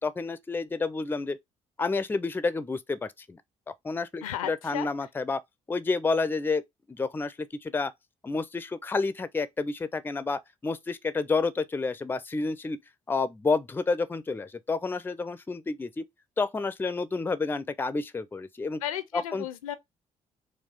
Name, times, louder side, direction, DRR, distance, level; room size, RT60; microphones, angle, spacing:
voice 1, 0.0-1.4 1.8-3.4 3.8-5.4 5.7-6.6 6.9-7.3 7.6-7.9 8.2-12.8 13.1-16.0 16.4-18.8 19.1-19.5, left 4 dB, 10° left, 0.4 m, -29 dB
voice 2, 4.2-4.9 18.8-19.8, left 11 dB, 75° left, 0.5 m, -34 dB
4.1 x 2.3 x 4.0 m
figure-of-eight pair, 40°, 18 cm